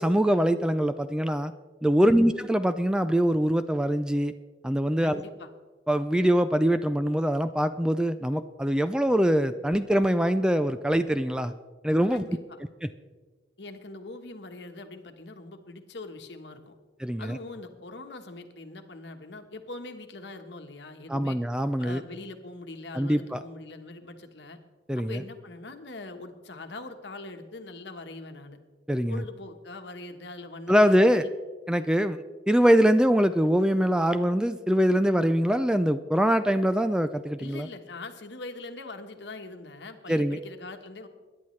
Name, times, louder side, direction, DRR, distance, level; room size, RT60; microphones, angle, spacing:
voice 1, 0.0-1.5 1.8-4.3 4.6-5.2 5.9-11.5 11.8-12.2 12.8-12.9 17.0-17.4 21.1-22.0 22.9-23.4 24.9-25.2 28.9-29.2 30.7-31.3 31.7-37.7 40.1-40.4, equal, 5° right, 11 dB, 0.3 m, -23 dB
voice 2, 5.0-5.5 12.1-12.6 13.6-16.8 17.2-21.4 21.8-24.6 24.9-28.6 29.1-31.3 37.4-41.1, left 2 dB, 65° left, 6 dB, 1.2 m, -42 dB
22.0 x 10.5 x 3.2 m, 1.4 s
head